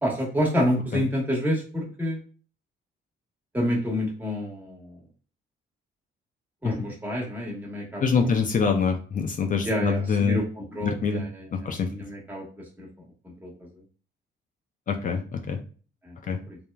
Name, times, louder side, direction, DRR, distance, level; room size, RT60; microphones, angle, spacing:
voice 1, 0.0-2.2 3.5-5.0 6.6-8.4 9.6-12.4 12.8-12.9 13.2-13.7 16.0-16.6, equal, 10° right, -2 dB, 1.2 m, -29 dB
voice 2, 8.0-10.4 10.8-11.2 11.5-11.9 14.9-15.6 16.3-16.4, left 5 dB, 45° left, 4 dB, 0.4 m, -25 dB
3.1 x 2.1 x 2.3 m, 0.40 s
cardioid pair, 90°, 20 cm